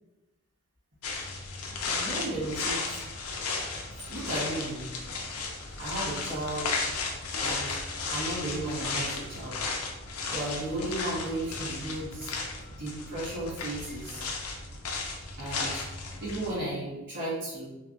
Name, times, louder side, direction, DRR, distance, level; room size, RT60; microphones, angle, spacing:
sound 1, 1.0-16.5, left 4 dB, 80° left, 0.5 m, -34 dB
voice 1, 1.9-2.8 4.1-4.9 5.8-6.8 7.4-7.8 8.1-9.6 10.3-12.3 12.8-14.3 15.4-15.8 16.2-17.7, right 1 dB, 50° right, -9 dB, 1.4 m, -34 dB
3.4 x 2.1 x 2.5 m, 1.0 s
head